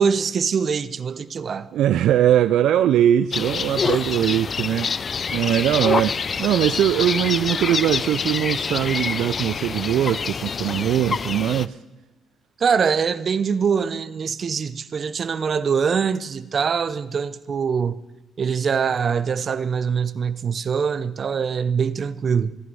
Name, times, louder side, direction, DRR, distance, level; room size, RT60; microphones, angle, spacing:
voice 1, 0.0-1.7 12.6-18.0 18.4-22.6, right 6 dB, 50° right, 0.7 m, -23 dB
voice 2, 1.7-11.8, right 11 dB, 75° right, 0.3 m, -21 dB
sound 1, 3.3-11.7, left 5 dB, 45° left, 0.4 m, -26 dB
14.0 x 11.0 x 5.4 m
supercardioid pair, 70°, 0 cm